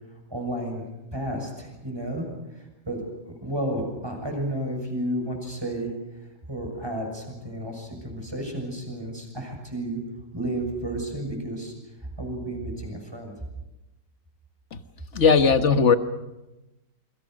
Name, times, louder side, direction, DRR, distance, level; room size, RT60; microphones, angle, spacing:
voice 1, 0.3-0.8 1.1-2.3 2.5-3.0 3.4-5.9 6.5-10.0 10.3-11.7 12.2-13.3, right 1 dB, 15° right, 3 dB, 6.7 m, -32 dB
voice 2, 15.1-16.0, left 5 dB, 45° left, 10 dB, 1.6 m, -18 dB
28.5 x 25.0 x 6.5 m, 0.98 s
omnidirectional pair, 1.9 m